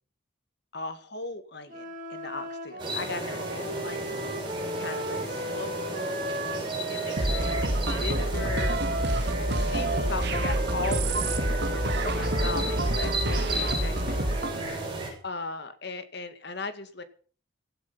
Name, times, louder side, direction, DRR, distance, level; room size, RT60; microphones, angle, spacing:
voice 1, 0.7-6.2 6.9-8.8 9.5-14.2 15.2-17.0, left 3 dB, 55° left, 11 dB, 1.8 m, -38 dB
sound 1, 1.7-7.7 8.3-15.0, right 1 dB, 40° right, 3.1 m, -36 dB
sound 2, 2.8-15.1, right 1 dB, 25° right, 7.4 m, -34 dB
sound 3, 7.2-14.6, right 1 dB, 55° right, 2.3 m, -28 dB
16.5 x 12.0 x 5.6 m, 0.43 s
head